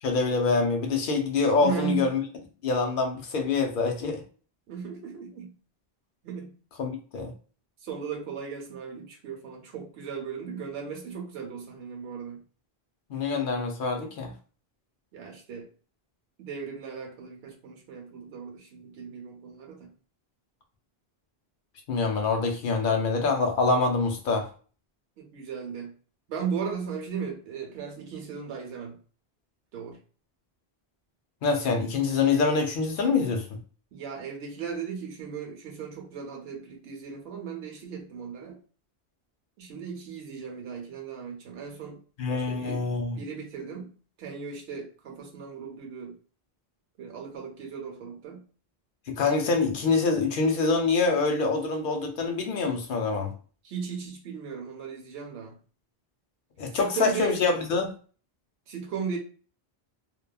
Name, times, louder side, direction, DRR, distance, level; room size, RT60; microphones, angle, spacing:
voice 1, 0.0-2.2 2.6-4.2 6.8-7.3 13.1-14.3 21.9-24.5 31.4-33.6 42.2-43.2 49.1-53.3 56.6-57.9, left 4 dB, 60° left, 0.7 m, -25 dB
voice 2, 1.6-2.1 4.7-5.5 6.2-6.5 7.8-12.4 15.1-15.7 16.4-19.9 25.2-25.9 26.3-29.0 29.7-30.0 33.9-38.6 39.6-42.0 42.5-43.9 44.2-46.2 47.0-48.4 53.6-55.6 56.7-57.4 58.7-59.2, right 6 dB, 85° right, 0.9 m, -36 dB
2.9 x 2.2 x 2.2 m
omnidirectional pair, 1.0 m